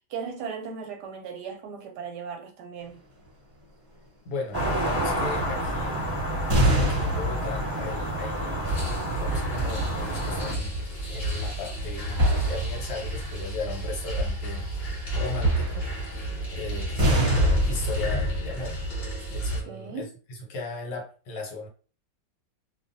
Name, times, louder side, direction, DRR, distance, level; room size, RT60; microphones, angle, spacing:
voice 1, 0.1-3.0 19.7-20.1, right 6 dB, 75° right, 1.1 m, -37 dB
voice 2, 4.2-6.0 6.8-10.7 11.1-12.2 12.5-14.8 15.1-18.8 19.0-21.7, left 3 dB, 70° left, 1.4 m, -37 dB
sound 1, 4.5-10.5, equal, 15° right, 1.4 m, -29 dB
sound 2, 6.5-10.3 10.6-10.9 12.1-13.1 13.6-13.7 15.3-16.4 17.0-18.0, right 1 dB, 35° right, 0.9 m, -26 dB
sound 3, 8.6-19.6, right 1 dB, 40° left, 0.9 m, -30 dB
2.7 x 2.5 x 2.5 m
omnidirectional pair, 2.0 m